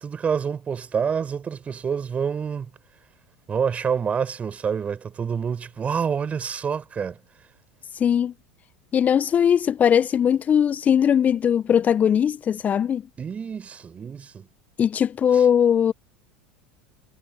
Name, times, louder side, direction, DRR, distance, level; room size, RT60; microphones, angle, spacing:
voice 1, 0.0-2.7 3.5-7.2 13.2-14.5 15.3-15.5, right 6 dB, 25° right, 5.4 m, -27 dB
voice 2, 7.9-8.3 8.9-13.0 14.8-15.9, left 8 dB, 30° left, 1.1 m, -20 dB
figure-of-eight pair, 80°, 5 cm